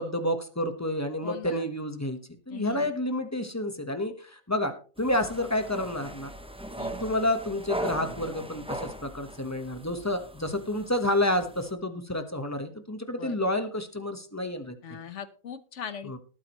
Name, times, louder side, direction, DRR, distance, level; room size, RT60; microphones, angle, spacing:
voice 1, 0.0-2.2 2.5-6.3 6.9-14.8 16.0-16.2, left 1 dB, 10° left, 8 dB, 1.1 m, -29 dB
voice 2, 1.2-1.7 2.5-2.9 6.8-7.0 13.2-13.4 14.8-16.2, left 8 dB, 50° left, 13 dB, 1.1 m, -40 dB
sound 1, 5.0-11.7, right 1 dB, 5° right, 0.5 m, -39 dB
19.0 x 8.8 x 3.1 m, 0.38 s
omnidirectional pair, 1.8 m